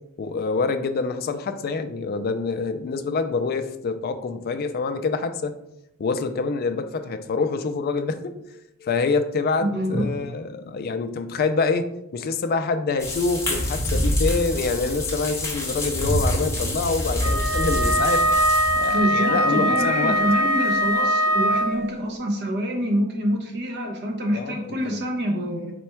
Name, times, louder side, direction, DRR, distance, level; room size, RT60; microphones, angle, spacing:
voice 1, 0.2-5.5 6.0-8.4 8.8-18.2 18.7-20.2 24.3-25.0, left 4 dB, 45° left, 9 dB, 0.3 m, -26 dB
voice 2, 9.6-10.1 18.9-25.7, equal, 50° right, 3 dB, 0.7 m, -26 dB
sound 1, 13.0-19.0, left 1 dB, 15° left, 0.8 m, -26 dB
Wind instrument woodwind instrument, 17.2-21.9, equal, 80° right, 1.3 m, -22 dB
4.2 x 2.3 x 4.3 m, 0.82 s
head